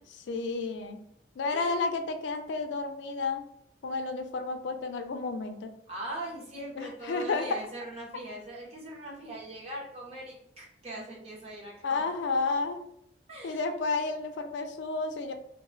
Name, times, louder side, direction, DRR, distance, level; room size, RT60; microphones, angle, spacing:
voice 1, 0.3-1.0 1.4-3.4 3.8-5.8 6.8-7.5 11.8-12.8 13.4-15.3, left 3 dB, 80° left, 6 dB, 0.4 m, -31 dB
voice 2, 1.5-1.8 5.9-12.2 13.3-13.6, right 1 dB, 35° right, -3 dB, 0.8 m, -41 dB
2.2 x 2.0 x 3.7 m, 0.73 s
head